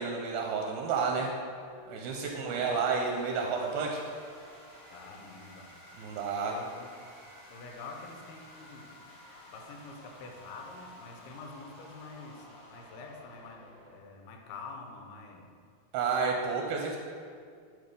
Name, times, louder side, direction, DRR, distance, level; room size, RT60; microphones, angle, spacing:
voice 1, 0.0-1.3 1.9-4.0 6.0-6.6 15.9-17.0, right 5 dB, 80° right, 1 dB, 2.3 m, -31 dB
sound 1, 1.4-14.0, left 1 dB, 65° left, 4.1 m, -52 dB
voice 2, 2.2-2.9 4.9-5.7 6.4-6.9 7.5-9.1 9.5-15.5, left 3 dB, 90° left, 2 dB, 2.8 m, -47 dB
10.5 x 3.9 x 5.2 m, 2.2 s
omnidirectional pair, 4.5 m